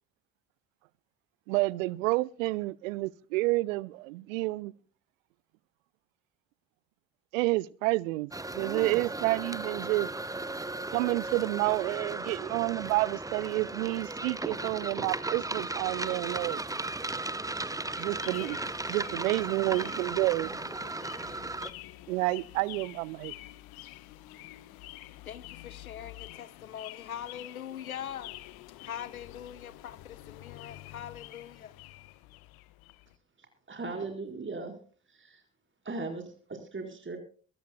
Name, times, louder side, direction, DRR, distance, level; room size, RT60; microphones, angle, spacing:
voice 1, 1.5-4.7 7.3-10.1 10.9-16.6 18.0-18.6 18.9-20.6 22.1-23.3, right 21 dB, 70° right, 0.6 m, -29 dB
sound 1, 8.3-21.7, right 2 dB, 10° right, 0.9 m, -36 dB
sound 2, 17.9-33.2, left 16 dB, 60° left, 1.2 m, -48 dB
voice 2, 25.2-28.4 28.8-31.8, left 9 dB, 85° left, 0.7 m, -42 dB
voice 3, 33.7-34.7 35.1-35.4 35.8-37.2, right 3 dB, 30° right, 4.6 m, -38 dB
22.5 x 17.0 x 2.2 m
figure-of-eight pair, 45°, 42 cm